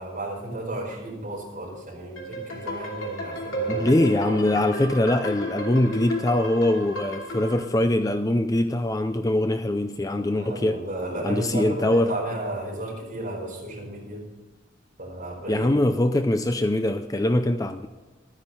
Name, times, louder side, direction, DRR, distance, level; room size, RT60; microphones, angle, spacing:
voice 1, 0.0-3.9 4.3-4.6 10.2-14.2 15.0-15.7, right 1 dB, 45° right, -2 dB, 4.7 m, -33 dB
sound 1, 2.2-7.6, right 1 dB, 85° left, 2.7 m, -33 dB
voice 2, 3.7-10.8 11.2-12.2 15.5-17.9, left 1 dB, 15° left, 8 dB, 0.5 m, -23 dB
12.5 x 9.8 x 5.5 m, 1.2 s
head